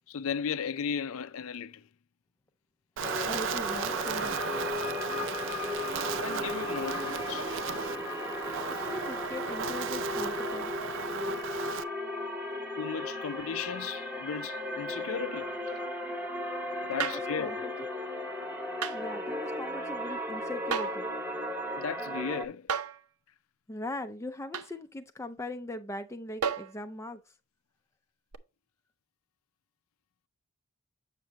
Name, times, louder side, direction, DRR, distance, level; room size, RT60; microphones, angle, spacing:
voice 1, 0.1-1.9 6.2-7.6 12.8-15.6 16.9-17.5 21.8-22.7, left 6 dB, 70° left, 0.5 m, -35 dB
sound 1, 3.0-22.5, left 1 dB, 10° right, 1.0 m, -36 dB
Wind, 3.0-11.8, right 6 dB, 55° right, 0.4 m, -35 dB
voice 2, 3.2-4.4 8.8-11.4 16.9-17.9 18.7-21.1 23.7-27.4, left 1 dB, 10° left, 0.4 m, -40 dB
sound 2, 17.0-17.3 18.8-19.0 20.7-21.1 22.7-23.0 24.5-24.7 26.4-26.8 28.3-28.4, right 6 dB, 85° right, 0.7 m, -32 dB
8.2 x 6.3 x 2.8 m
head